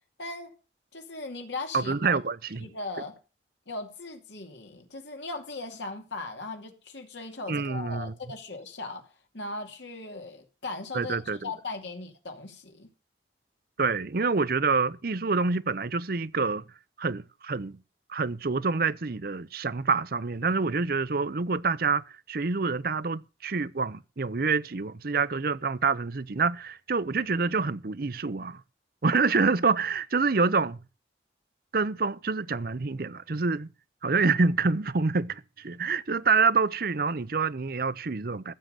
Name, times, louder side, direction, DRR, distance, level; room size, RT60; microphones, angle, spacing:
voice 1, 0.2-0.5 0.9-2.2 2.6-3.2 3.7-9.0 9.3-12.9, left 3 dB, 75° left, 2.6 m, -38 dB
voice 2, 1.7-2.7 7.5-8.1 10.9-11.5 13.8-16.6 17.0-17.8 18.1-22.0 22.3-28.6 29.0-30.8 31.7-33.7 34.0-38.5, right 4 dB, 55° right, 0.7 m, -27 dB
14.5 x 7.5 x 6.5 m
head